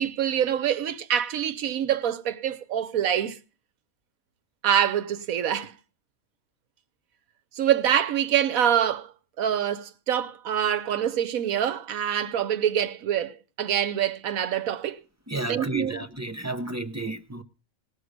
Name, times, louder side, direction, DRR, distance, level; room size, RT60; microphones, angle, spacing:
voice 1, 0.0-3.4 4.6-5.8 7.6-9.1 9.4-15.0 15.5-16.0, right 9 dB, 85° right, 1.3 m, -25 dB
voice 2, 15.3-17.4, right 2 dB, 15° right, 0.6 m, -32 dB
18.5 x 6.6 x 6.5 m
omnidirectional pair, 1.4 m